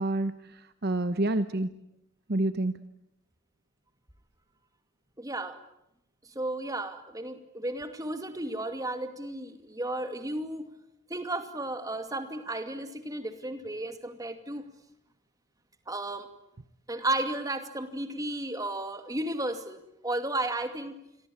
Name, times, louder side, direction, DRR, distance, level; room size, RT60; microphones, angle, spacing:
voice 1, 0.0-1.7 2.3-2.8, right 2 dB, 45° right, 12 dB, 1.0 m, -28 dB
voice 2, 5.2-5.6 6.3-10.7 11.1-14.7 15.9-16.3 16.9-21.0, right 1 dB, 15° right, 8 dB, 2.4 m, -33 dB
29.0 x 22.5 x 8.8 m, 0.79 s
head